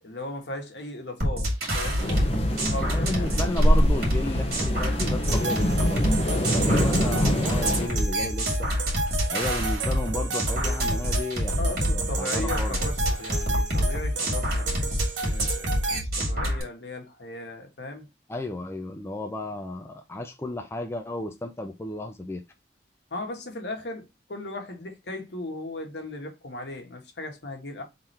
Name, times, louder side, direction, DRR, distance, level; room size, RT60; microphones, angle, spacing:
voice 1, 0.0-2.1 2.7-3.5 11.6-18.1 23.1-27.8, left 2 dB, 70° left, 1.3 m, -37 dB
sound 1, 1.2-16.6, equal, 55° right, 2.2 m, -26 dB
sound 2, 2.0-7.9, equal, 35° left, 1.0 m, -25 dB
voice 2, 2.8-8.7 9.3-12.8 18.3-22.4, left 2 dB, 15° left, 0.4 m, -33 dB
sound 3, 5.3-16.0, right 3 dB, 85° right, 0.9 m, -33 dB
3.7 x 3.3 x 4.2 m
head